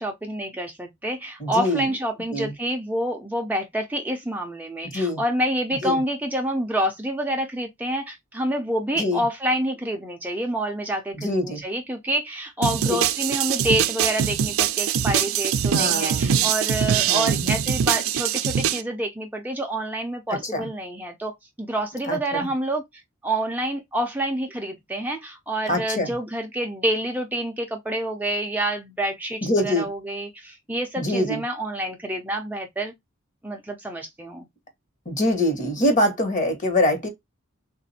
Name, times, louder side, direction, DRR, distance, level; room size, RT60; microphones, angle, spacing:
voice 1, 0.0-22.8 23.2-32.9 33.4-34.5, right 1 dB, 10° right, 0.5 m, -28 dB
voice 2, 1.4-1.8 2.3-2.5 4.9-5.2 5.8-6.0 8.9-9.2 11.1-11.6 12.9-13.0 15.7-16.5 17.1-17.5 20.3-20.7 22.1-22.5 25.7-26.1 29.4-29.9 31.0-31.4 35.0-37.1, left 1 dB, 40° left, 1.2 m, -24 dB
sound 1, 12.6-18.8, right 8 dB, 75° right, 0.4 m, -23 dB
3.6 x 2.5 x 4.1 m
head